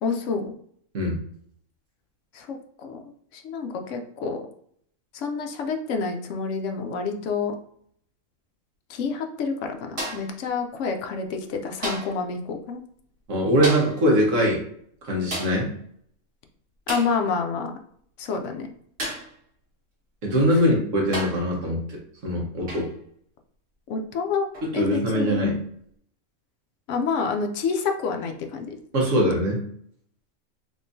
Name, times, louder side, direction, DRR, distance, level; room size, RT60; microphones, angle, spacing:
voice 1, 0.0-0.5 2.3-3.0 3.3-4.4 5.1-7.5 8.9-12.8 16.9-17.7 18.2-18.7 20.5-20.6 23.9-24.5 24.7-25.5 26.9-28.7, left 5 dB, 65° left, 4 dB, 0.8 m, -28 dB
sound 1, 10.0-10.4 11.8-12.2 13.6-14.0 15.3-15.6 16.9-17.2 19.0-19.3 20.4-20.5 21.1-21.5 22.7-22.9 24.5-24.7, right 1 dB, 45° right, 1.5 m, -32 dB
voice 2, 13.3-14.6 15.0-15.7 20.2-21.8 22.2-22.9 24.6-25.6 28.9-29.6, equal, 60° right, -2 dB, 1.4 m, -22 dB
3.6 x 3.1 x 2.6 m, 0.65 s
omnidirectional pair, 1.5 m